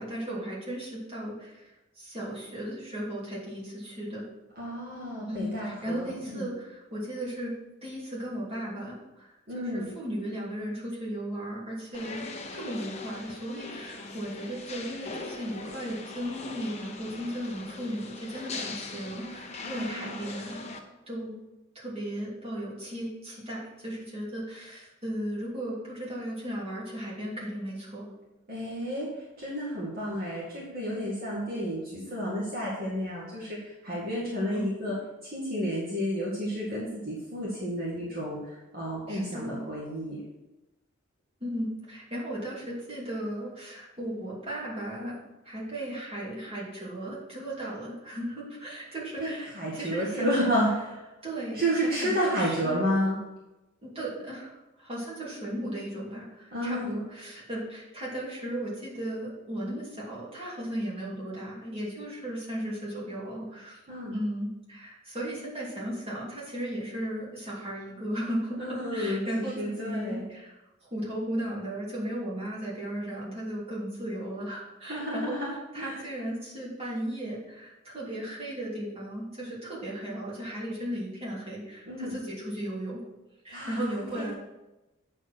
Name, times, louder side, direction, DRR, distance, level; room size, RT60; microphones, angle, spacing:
voice 1, 0.0-1.7 1.9-4.2 5.3-7.5 7.8-20.7 21.1-21.4 21.7-28.1 34.5-34.9 39.1-39.7 41.4-45.2 45.4-50.6 51.2-52.9 53.8-63.8 64.1-70.6 70.9-75.4 75.7-83.0 83.4-84.3, right 1 dB, 30° right, -7 dB, 3.0 m, -36 dB
voice 2, 4.6-6.5 9.5-9.9 19.6-20.2 28.5-34.9 35.2-40.2 49.2-50.9 51.5-53.2 56.5-57.0 63.9-64.2 68.6-70.2 74.8-76.0 81.9-82.1 83.5-84.3, equal, 50° right, -6 dB, 2.1 m, -31 dB
sound 1, 11.9-20.8, left 3 dB, 35° left, 0.9 m, -41 dB
8.8 x 4.7 x 6.2 m, 1.0 s
head